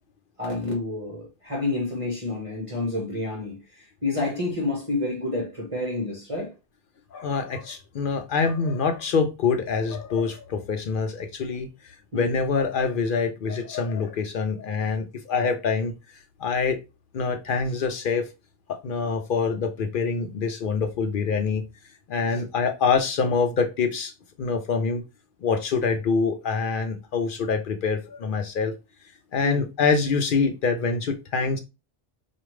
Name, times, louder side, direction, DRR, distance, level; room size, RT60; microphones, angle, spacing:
voice 1, 0.4-6.5 12.1-12.3 22.3-22.4 29.4-29.6, left 2 dB, 30° right, 1.1 m, -29 dB
voice 2, 7.1-11.7 12.1-15.9 16.4-16.8 17.1-18.3 18.7-21.6 22.1-24.1 24.4-25.0 25.4-28.7 29.3-31.6, left 5 dB, 60° left, 0.6 m, -25 dB
4.7 x 2.5 x 3.0 m
omnidirectional pair, 1.2 m